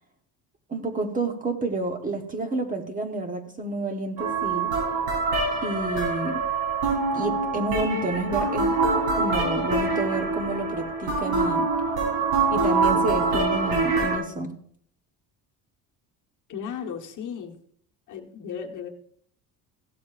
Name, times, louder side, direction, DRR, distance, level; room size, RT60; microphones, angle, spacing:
voice 1, 0.7-4.7 5.6-6.4 7.1-8.8 9.1-11.7 12.5-14.6, right 2 dB, 20° right, 5 dB, 1.1 m, -29 dB
sound 1, 4.2-14.2, right 3 dB, 90° right, 3.9 m, -25 dB
voice 2, 16.5-17.6 18.1-18.9, left 7 dB, 45° left, 3 dB, 1.3 m, -35 dB
16.0 x 12.5 x 2.5 m, 0.62 s
cardioid pair, 160°, 42 cm